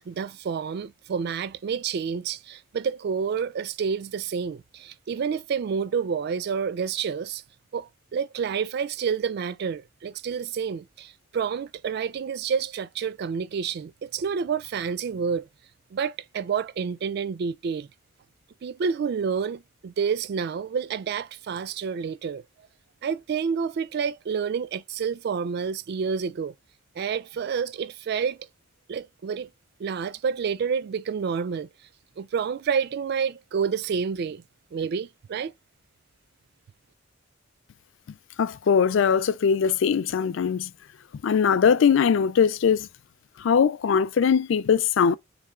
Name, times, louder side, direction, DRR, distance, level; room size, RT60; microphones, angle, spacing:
voice 1, 0.0-7.4 7.7-15.5 15.9-17.9 18.6-22.4 23.0-26.5 27.0-28.5 28.9-29.5 29.8-31.7 32.2-34.4 34.7-35.5, right 6 dB, 50° right, 0.3 m, -29 dB
voice 2, 38.4-40.7 41.2-42.9 43.4-45.2, left 6 dB, 65° left, 0.3 m, -21 dB
3.6 x 3.4 x 3.6 m
head